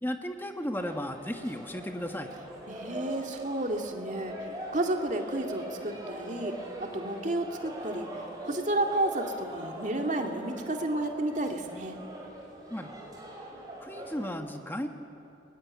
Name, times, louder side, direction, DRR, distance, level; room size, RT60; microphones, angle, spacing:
voice 1, 0.0-2.3 12.7-13.0 13.8-14.9, equal, 10° left, 5 dB, 1.3 m, -35 dB
sound 1, 0.7-14.3, right 1 dB, 20° right, 5.4 m, -42 dB
voice 2, 2.7-12.0, right 1 dB, 45° right, 3 dB, 2.2 m, -32 dB
28.0 x 22.0 x 9.7 m, 2.9 s
head